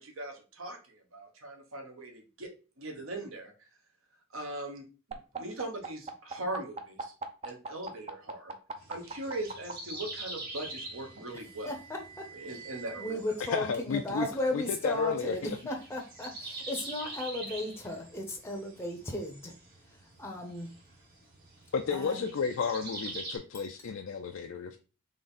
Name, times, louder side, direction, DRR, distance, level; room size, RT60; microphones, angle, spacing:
voice 1, 0.0-2.5 2.8-3.5 4.3-4.8 5.4-7.1 7.4-8.5 8.9-11.7 12.4-13.2, right 1 dB, 70° right, 1.2 m, -40 dB
sound 1, 5.1-9.7 10.9-13.1, right 5 dB, 30° right, 0.5 m, -42 dB
sound 2, 8.8-23.4, right 2 dB, 45° right, 1.9 m, -46 dB
voice 2, 11.3-12.6 13.0-19.5 20.2-20.7 21.9-22.3, left 1 dB, 10° left, 0.6 m, -36 dB
voice 3, 13.5-14.3 14.5-15.6 21.7-24.8, left 5 dB, 65° left, 0.4 m, -32 dB
3.8 x 3.4 x 4.0 m
head